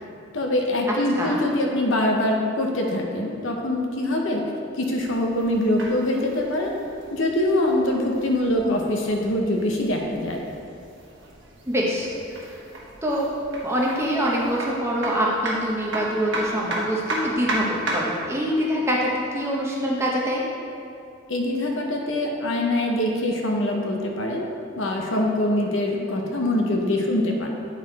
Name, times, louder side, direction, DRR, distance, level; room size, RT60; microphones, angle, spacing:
voice 1, 0.3-4.5 4.8-6.7 7.1-10.4 21.3-24.5 24.7-27.5, left 1 dB, 70° left, 1 dB, 0.8 m, -24 dB
sound 1, 4.9-18.2, right 1 dB, 65° right, 1.1 m, -34 dB
voice 2, 11.7-12.1 12.4-12.6 13.0-13.3 13.6-20.4, equal, 15° right, -4 dB, 0.8 m, -25 dB
9.4 x 4.2 x 4.0 m, 2.5 s
head